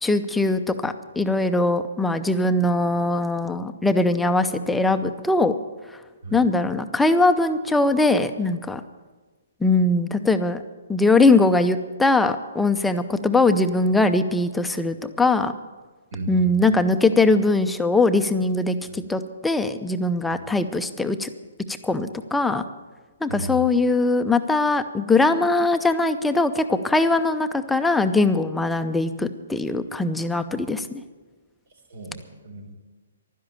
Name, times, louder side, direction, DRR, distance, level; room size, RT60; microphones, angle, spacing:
voice 1, 0.0-5.5 6.3-8.8 9.6-10.6 10.9-15.5 16.3-21.3 21.7-22.6 23.2-31.0, left 2 dB, 5° left, 8 dB, 0.6 m, -21 dB
voice 2, 16.1-16.8 20.3-20.4 23.3-23.6 31.9-32.8, right 3 dB, 70° right, 3 dB, 4.0 m, -34 dB
12.0 x 10.5 x 8.9 m, 1.3 s
hypercardioid pair, 150°, 0 cm